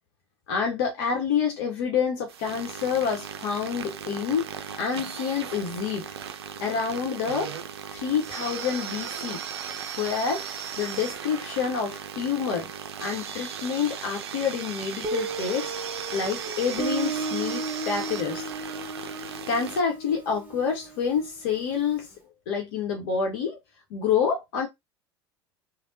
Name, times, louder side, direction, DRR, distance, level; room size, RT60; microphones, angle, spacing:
voice 1, 0.5-4.5 4.8-6.1 6.6-7.5 7.9-9.4 10.0-10.5 10.8-12.7 13.0-15.7 16.1-18.4 19.5-22.1 22.5-23.6 23.9-24.7, left 6 dB, 65° left, 1.0 m, -27 dB
sound 1, 2.3-19.8, right 8 dB, 75° right, 0.5 m, -37 dB
Guitar, 15.0-21.7, right 3 dB, 15° right, 1.1 m, -34 dB
3.4 x 2.3 x 2.7 m
figure-of-eight pair, 75°, 14 cm